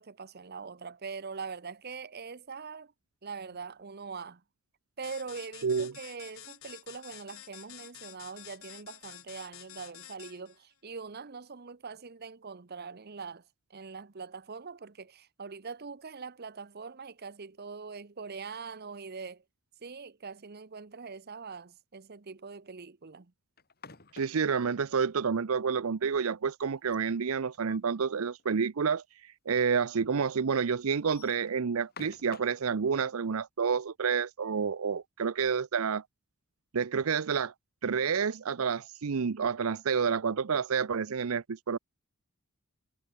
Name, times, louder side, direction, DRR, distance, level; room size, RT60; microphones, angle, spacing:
voice 1, 0.0-2.9 3.2-4.4 5.0-13.4 13.7-19.4 19.8-23.3, right 5 dB, 50° right, 0.9 m, -43 dB
sound 1, 5.0-10.6, left 12 dB, 75° left, 3.6 m, -49 dB
voice 2, 5.6-5.9 24.1-36.0 36.7-37.5 37.8-41.8, right 6 dB, 80° right, 0.6 m, -29 dB
sound 2, 23.6-24.7 26.7-28.0 28.4-28.5 28.8-28.9 29.6-29.7 30.9-32.6, left 4 dB, 45° left, 5.4 m, -51 dB
head